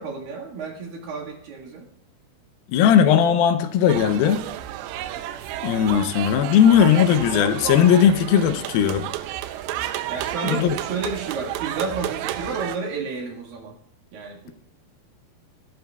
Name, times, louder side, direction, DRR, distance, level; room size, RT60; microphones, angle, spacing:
voice 1, 0.0-1.9 10.1-13.8 14.1-14.5, right 4 dB, 60° right, -2 dB, 3.3 m, -31 dB
voice 2, 2.7-4.4 5.6-9.1 10.4-10.7, left 9 dB, 80° left, 8 dB, 2.2 m, -18 dB
sound 1, 3.9-12.8, right 12 dB, 90° right, 2.8 m, -31 dB
21.5 x 11.5 x 2.4 m, 0.74 s
omnidirectional pair, 4.9 m